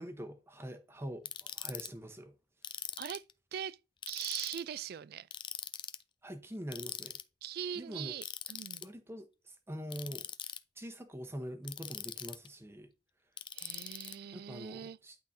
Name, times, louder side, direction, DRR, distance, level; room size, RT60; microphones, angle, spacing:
voice 1, 0.0-2.3 6.2-7.2 7.8-8.1 8.8-10.3 10.8-12.9 14.3-15.2, equal, 15° right, 0.9 m, -44 dB
Ratchet pawl, 1.2-1.9 2.6-3.3 4.0-4.6 5.3-6.0 6.7-7.2 8.2-8.8 9.9-10.6 11.6-12.5 13.4-14.1, left 9 dB, 25° left, 0.4 m, -42 dB
voice 2, 4.1-5.3 7.4-8.8 13.5-15.0, right 9 dB, 55° right, 0.3 m, -41 dB
11.5 x 3.8 x 2.7 m
head